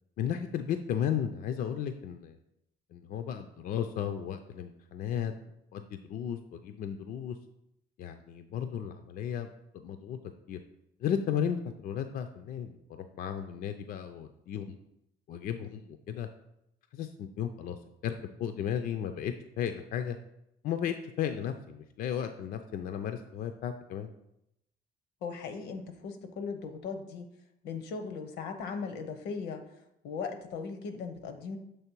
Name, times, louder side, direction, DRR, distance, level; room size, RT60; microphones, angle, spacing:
voice 1, 0.2-2.4 2.9-5.3 5.7-7.4 8.0-10.2 10.5-10.6 11.0-14.8 15.3-16.3 16.9-17.8 18.0-18.1 18.4-20.2 20.6-24.1, left 9 dB, 60° left, 7 dB, 0.4 m, -34 dB
voice 2, 25.2-27.3 27.6-29.6 30.0-31.6, left 5 dB, 85° left, 7 dB, 0.8 m, -38 dB
6.8 x 3.2 x 4.5 m, 0.81 s
cardioid pair, 110°, 17 cm